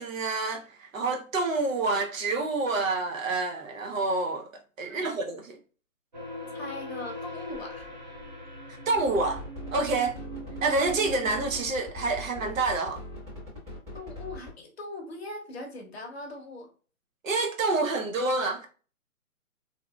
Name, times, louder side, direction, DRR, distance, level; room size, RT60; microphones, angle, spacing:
voice 1, 0.0-4.5 4.8-5.6 8.9-9.4 9.7-10.2 10.6-13.0 17.2-18.7, right 3 dB, 65° right, 0.8 m, -28 dB
voice 2, 4.9-5.4 6.5-7.9 13.9-16.7, left 2 dB, 45° left, 0.8 m, -40 dB
sound 1, 6.1-11.7, equal, 30° right, 0.5 m, -41 dB
sound 2, 9.0-14.5, left 1 dB, 15° right, 1.3 m, -41 dB
2.7 x 2.6 x 2.3 m
hypercardioid pair, 155°, 43 cm